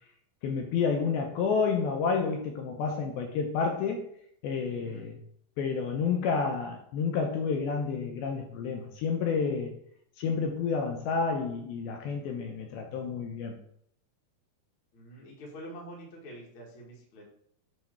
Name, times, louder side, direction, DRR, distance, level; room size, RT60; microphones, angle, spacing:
voice 1, 0.4-4.0 4.4-5.2 5.6-9.8 10.2-13.6, left 5 dB, 80° left, 2 dB, 2.3 m, -30 dB
voice 2, 14.9-17.3, equal, 60° left, -2 dB, 1.4 m, -46 dB
8.0 x 3.1 x 4.3 m, 0.68 s
omnidirectional pair, 4.7 m